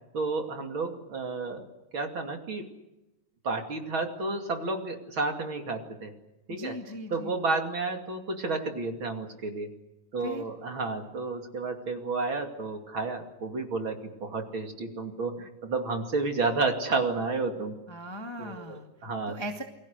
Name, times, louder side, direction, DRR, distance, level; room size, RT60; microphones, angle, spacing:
voice 1, 0.1-1.6 1.9-2.7 3.4-6.1 6.5-6.7 7.1-9.7 10.1-17.7 18.4-19.4, right 3 dB, 40° right, 3 dB, 3.0 m, -31 dB
voice 2, 6.5-7.3 10.2-10.4 17.9-18.9 19.3-19.6, equal, 10° left, 3 dB, 1.5 m, -38 dB
29.0 x 22.5 x 6.6 m, 0.94 s
omnidirectional pair, 3.6 m